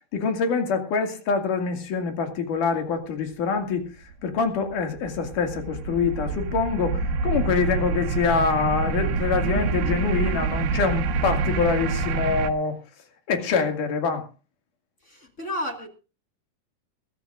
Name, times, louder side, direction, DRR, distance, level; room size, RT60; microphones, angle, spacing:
voice 1, 0.1-12.8 13.3-14.3, left 5 dB, 65° left, 3.8 m, -25 dB
sound 1, 4.1-12.5, right 4 dB, 90° right, 2.9 m, -27 dB
voice 2, 15.1-15.9, equal, 30° left, 1.7 m, -32 dB
21.5 x 13.5 x 2.5 m
omnidirectional pair, 4.0 m